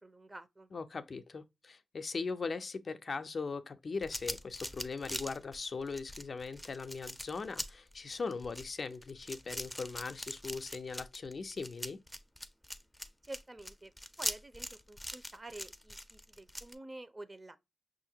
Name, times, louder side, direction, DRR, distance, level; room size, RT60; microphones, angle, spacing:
voice 1, 0.0-0.7 13.2-13.9 14.2-17.6, right 2 dB, 30° right, 0.7 m, -49 dB
voice 2, 0.7-12.0, left 4 dB, 55° left, 0.4 m, -40 dB
sound 1, 4.0-16.7, equal, 5° left, 0.5 m, -42 dB
5.6 x 2.5 x 2.8 m
cardioid pair, 60°, 0 cm